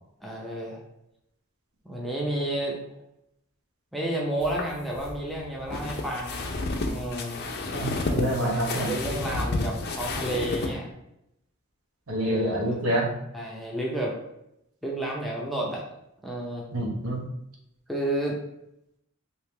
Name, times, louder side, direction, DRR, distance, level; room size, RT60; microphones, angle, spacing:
voice 1, 0.2-0.8 1.8-3.0 3.9-6.5 6.8-7.4 8.9-10.9 12.2-12.8 13.3-14.1 14.8-15.8 16.2-16.6 17.9-18.4, right 1 dB, ahead, -4 dB, 0.6 m, -31 dB
sound 1, 4.4-10.7, left 2 dB, 50° left, 0.4 m, -31 dB
voice 2, 7.7-8.9 12.1-13.1 16.7-17.2, right 1 dB, 75° right, -1 dB, 0.9 m, -27 dB
3.3 x 2.8 x 3.3 m, 0.82 s
head